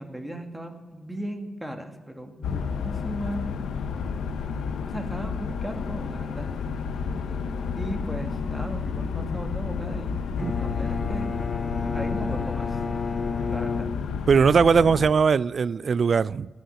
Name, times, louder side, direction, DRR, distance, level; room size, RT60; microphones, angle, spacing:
voice 1, 0.0-3.4 4.9-6.5 7.8-10.2 10.6-11.3 11.9-12.8 13.5-13.9, right 1 dB, 5° right, 2.1 m, -36 dB
sound 1, 2.4-15.1, left 6 dB, 90° left, 0.8 m, -31 dB
Bowed string instrument, 10.4-14.6, left 4 dB, 50° left, 0.5 m, -32 dB
voice 2, 14.3-16.5, right 5 dB, 60° right, 0.3 m, -20 dB
17.0 x 6.4 x 8.4 m
cardioid pair, 55°, 0 cm